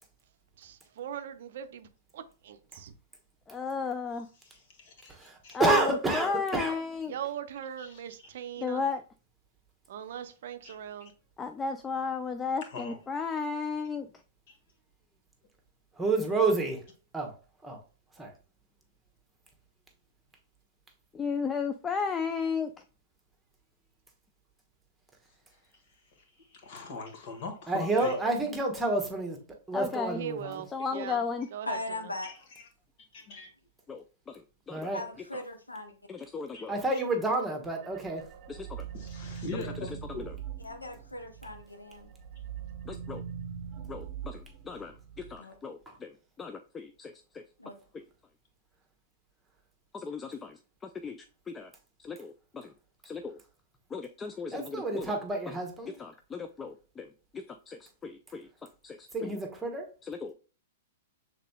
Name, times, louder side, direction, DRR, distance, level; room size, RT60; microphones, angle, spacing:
voice 1, 0.6-1.9 2.1-2.9 7.1-8.8 9.9-11.1 30.1-31.2 31.5-32.0, right 9 dB, 60° right, 0.5 m, -40 dB
voice 2, 3.5-4.3 5.5-7.1 8.6-9.0 11.4-14.1 21.1-22.7 29.7-30.2 30.7-31.5 33.9-34.9 36.1-36.8 38.5-38.9 39.6-39.9 40.2-40.4 42.9-43.2 43.9-47.4 49.9-51.7 52.0-52.7 53.0-53.4 53.9-55.2 55.5-55.6 55.9-58.5 58.8-59.4 60.0-60.3, left 5 dB, 15° left, 0.3 m, -35 dB
voice 3, 4.4-5.6 7.8-8.0 10.6-10.7 11.0-11.1 12.7-13.0 14.5-14.6 25.9-28.5 32.2-32.3 33.1-33.5 36.5-36.6 36.9-37.0 38.9-40.3, left 4 dB, 50° left, 1.4 m, -42 dB
voice 4, 5.1-6.7 16.0-16.8 17.1-17.3 17.6-17.8 18.2-18.3 27.7-29.4 29.7-30.6 34.7-35.0 36.7-38.2 54.5-55.9 59.1-59.9, right 2 dB, 10° right, 1.1 m, -29 dB
voice 5, 31.7-32.3 34.9-36.0 40.6-42.5 45.4-45.5 47.6-47.7, left 2 dB, 90° left, 0.9 m, -39 dB
sound 1, 37.7-41.6 42.0-45.4, right 8 dB, 40° right, 0.8 m, -42 dB
6.5 x 3.6 x 2.3 m
figure-of-eight pair, 105°, 0 cm